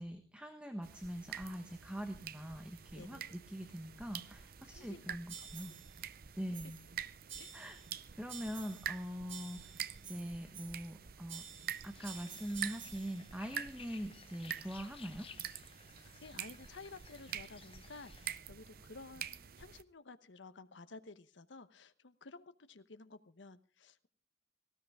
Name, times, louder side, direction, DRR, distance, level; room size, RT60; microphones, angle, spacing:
voice 1, 0.0-5.7 6.4-6.8 7.5-11.4 11.8-15.3, equal, 5° right, 6 dB, 1.2 m, -43 dB
sound 1, 0.8-19.8, right 9 dB, 50° right, 0.6 m, -47 dB
voice 2, 4.6-5.8 6.4-6.6 7.4-7.6 15.9-24.1, left 3 dB, 75° left, 12 dB, 0.9 m, -54 dB
sound 2, 5.3-5.9 6.5-6.9 7.3-7.9 8.3-9.0 9.3-10.9 11.3-13.2, right 8 dB, 90° right, 2.8 m, -51 dB
sound 3, 11.9-18.4, left 6 dB, 30° left, 0.9 m, -57 dB
18.5 x 16.0 x 3.6 m, 0.36 s
head